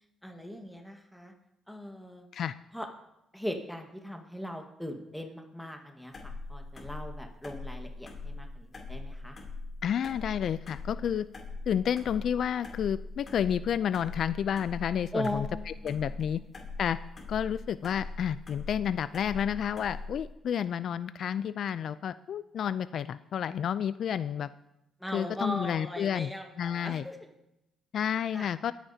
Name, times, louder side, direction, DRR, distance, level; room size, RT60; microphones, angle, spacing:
voice 1, 0.2-1.3 1.7-2.3 2.7-2.9 3.3-9.4 15.1-16.0 25.0-27.2 28.3-28.5, equal, 5° left, 3 dB, 1.4 m, -39 dB
sound 1, 6.1-20.3, left 3 dB, 40° left, 2.8 m, -41 dB
voice 2, 9.8-11.3 11.7-16.4 16.8-17.0 17.3-24.5 25.1-26.3 26.6-27.1 27.9-28.7, left 8 dB, 65° left, 14 dB, 0.3 m, -30 dB
22.5 x 9.1 x 2.8 m, 0.88 s
cardioid pair, 90°, 0 cm